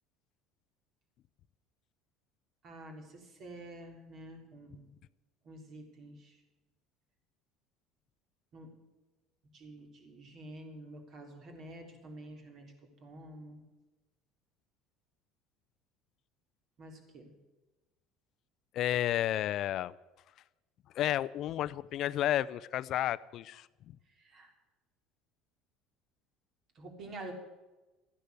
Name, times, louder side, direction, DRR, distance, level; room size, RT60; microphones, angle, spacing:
voice 1, 2.6-4.8 5.4-6.4 8.5-8.7 9.5-12.7 13.0-13.6 16.8-17.3 24.2-24.5 26.8-27.3, right 1 dB, 50° right, 3 dB, 3.7 m, -48 dB
voice 2, 18.7-19.9 21.0-23.7, left 12 dB, 55° left, 18 dB, 0.5 m, -31 dB
14.0 x 10.0 x 8.2 m, 1.1 s
supercardioid pair, 100°, 0 cm